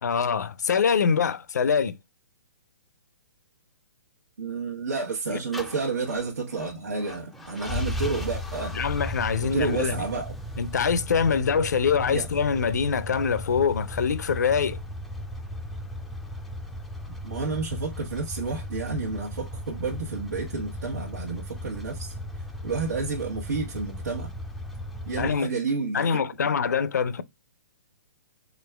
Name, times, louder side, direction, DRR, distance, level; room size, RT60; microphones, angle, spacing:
voice 1, 0.0-2.0 5.3-5.4 8.7-10.0 10.6-14.8 25.2-25.5 25.9-27.2, left 6 dB, 80° left, 0.5 m, -24 dB
voice 2, 4.4-8.8 9.5-10.3 12.1-12.3 17.2-22.1 22.6-24.3 25.1-26.5, right 4 dB, 80° right, 1.1 m, -30 dB
sound 1, 5.5-25.4, left 1 dB, ahead, 0.4 m, -36 dB
5.0 x 3.6 x 2.3 m
hypercardioid pair, 140°, 9 cm